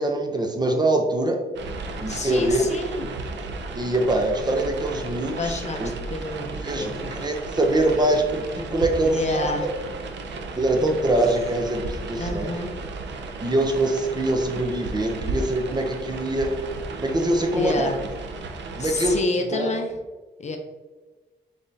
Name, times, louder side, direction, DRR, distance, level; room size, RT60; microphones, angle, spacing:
voice 1, 0.0-1.4 2.0-2.6 3.8-5.9 6.6-9.5 10.6-12.5 13.4-16.5 17.0-17.9 18.8-19.2 19.5-19.7, right 1 dB, 25° right, 3 dB, 0.5 m, -24 dB
sound 1, 1.6-19.2, right 3 dB, 90° right, 0.5 m, -34 dB
voice 2, 2.1-3.1 5.4-7.2 9.0-9.7 12.2-12.7 17.5-18.0 18.8-19.9 20.4-20.6, left 2 dB, 40° left, 4 dB, 0.5 m, -29 dB
4.0 x 3.5 x 2.6 m, 1.2 s
cardioid pair, 105°, 18 cm